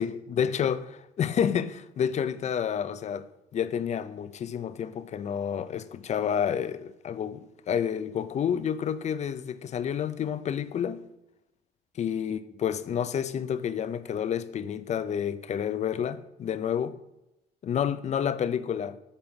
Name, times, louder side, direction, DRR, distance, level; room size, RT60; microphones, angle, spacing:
voice 1, 0.0-3.3 3.5-11.0 12.0-17.0 17.6-19.0, left 8 dB, 40° left, 0.6 m, -29 dB
8.7 x 4.3 x 5.9 m
cardioid pair, 110°, 17 cm